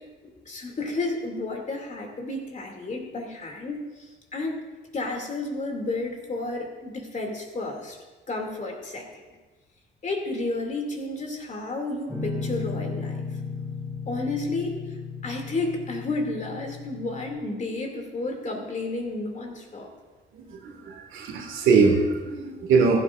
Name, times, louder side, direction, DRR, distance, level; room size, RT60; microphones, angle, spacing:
voice 1, 0.2-4.6 4.9-8.0 8.3-9.1 10.0-13.2 14.1-14.8 15.2-19.9, left 2 dB, 40° left, 1 dB, 2.6 m, -31 dB
Guitar, 12.1-17.4, left 4 dB, 5° right, 4.1 m, -35 dB
voice 2, 20.4-23.0, right 4 dB, 85° right, 1 dB, 2.2 m, -22 dB
15.0 x 12.5 x 2.6 m, 1.2 s
cardioid pair, 90°, 20 cm